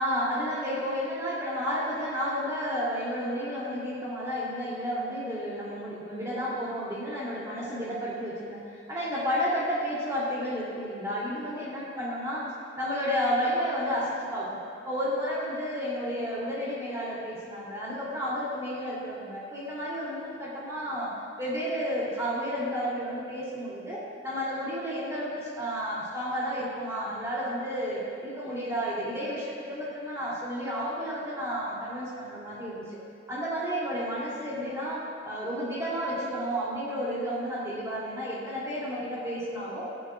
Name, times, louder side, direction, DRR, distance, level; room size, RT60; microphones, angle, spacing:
voice 1, 0.0-8.6 8.9-12.5 12.8-33.0 33.3-39.8, equal, 15° right, -7 dB, 2.9 m, -31 dB
17.5 x 11.0 x 2.4 m, 2.4 s
head